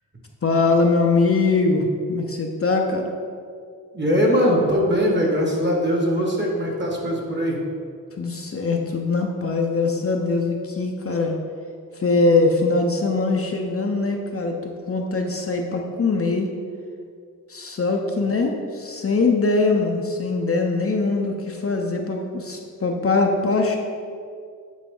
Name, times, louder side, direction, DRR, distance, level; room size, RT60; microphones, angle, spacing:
voice 1, 0.4-3.1 8.2-11.4 11.9-16.5 17.5-23.8, left 3 dB, 45° left, 2 dB, 0.6 m, -22 dB
voice 2, 3.9-7.6, equal, 35° right, -1 dB, 1.3 m, -21 dB
8.4 x 4.3 x 3.7 m, 2.2 s
wide cardioid pair, 105°, 33 cm